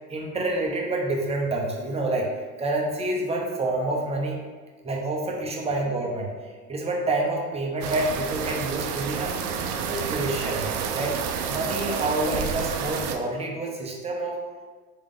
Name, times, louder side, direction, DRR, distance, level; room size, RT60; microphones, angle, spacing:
voice 1, 0.1-2.3 2.6-4.4 4.8-9.3 9.8-10.7 10.9-11.2 11.5-14.4, right 2 dB, 15° right, -1 dB, 0.8 m, -28 dB
sound 1, 7.8-13.2, right 6 dB, 65° right, 0.7 m, -29 dB
3.9 x 3.5 x 3.7 m, 1.4 s
hypercardioid pair, 105°, 47 cm